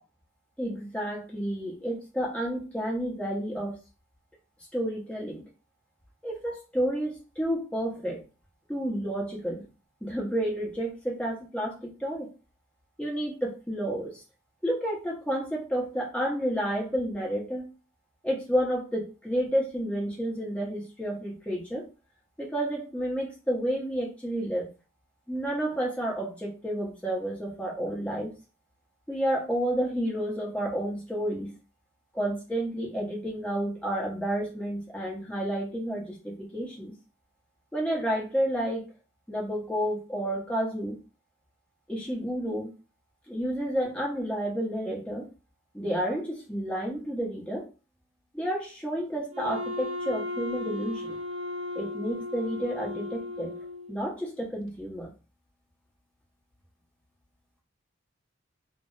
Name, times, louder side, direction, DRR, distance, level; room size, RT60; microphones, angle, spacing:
voice 1, 0.6-3.8 4.7-5.4 6.2-8.2 8.7-9.6 10.0-12.3 13.0-14.2 14.6-17.7 18.2-21.9 22.4-24.7 25.3-28.3 29.1-31.5 32.1-36.9 37.7-38.9 39.3-41.0 41.9-42.7 43.3-45.3 45.7-47.7 48.3-51.2 51.7-53.5 53.9-55.1, equal, 5° left, -3 dB, 0.8 m, -30 dB
Wind instrument woodwind instrument, 49.3-54.0, left 2 dB, 75° right, 0.6 m, -35 dB
2.4 x 2.0 x 3.7 m, 0.32 s
head